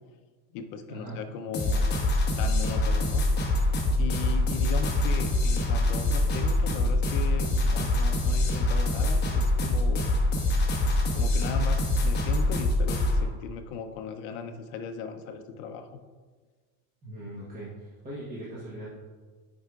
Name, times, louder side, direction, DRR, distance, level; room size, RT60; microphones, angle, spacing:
voice 1, 0.5-1.9 2.4-3.2 4.0-10.1 11.1-16.0, left 6 dB, 55° left, 6 dB, 0.5 m, -37 dB
sound 1, 1.5-13.2, left 1 dB, 25° left, 0.9 m, -25 dB
voice 2, 17.0-18.9, right 1 dB, 20° right, -7 dB, 1.0 m, -40 dB
9.4 x 4.6 x 2.3 m, 1.4 s
cardioid pair, 160°, 41 cm